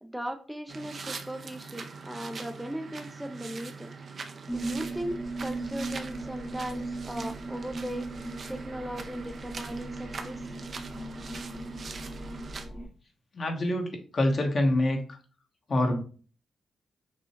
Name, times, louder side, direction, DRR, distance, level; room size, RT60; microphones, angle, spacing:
voice 1, 0.0-3.9 4.5-8.1 8.5-10.6, equal, 5° right, 6 dB, 0.5 m, -38 dB
sound 1, 0.7-12.6, right 4 dB, 55° right, 0.6 m, -42 dB
sound 2, 4.5-12.9, right 2 dB, 15° left, 0.9 m, -38 dB
voice 2, 13.3-13.9 14.1-15.0 15.7-16.0, left 1 dB, 50° left, 3 dB, 1.2 m, -25 dB
6.1 x 2.3 x 3.0 m, 0.38 s
cardioid pair, 65°, 0 cm